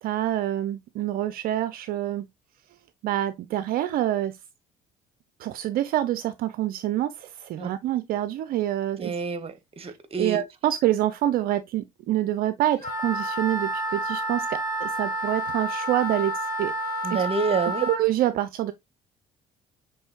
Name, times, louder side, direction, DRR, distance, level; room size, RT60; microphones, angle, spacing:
voice 1, 0.0-2.3 3.0-4.4 5.4-9.1 10.2-16.7 17.1-17.2 17.9-18.7, right 13 dB, 55° right, 0.4 m, -26 dB
voice 2, 9.0-10.4 17.0-17.9, right 5 dB, 35° right, 0.9 m, -28 dB
Wind instrument woodwind instrument, 12.8-18.0, right 1 dB, 45° left, 1.6 m, -29 dB
6.0 x 3.1 x 2.3 m
hypercardioid pair, 60°, 18 cm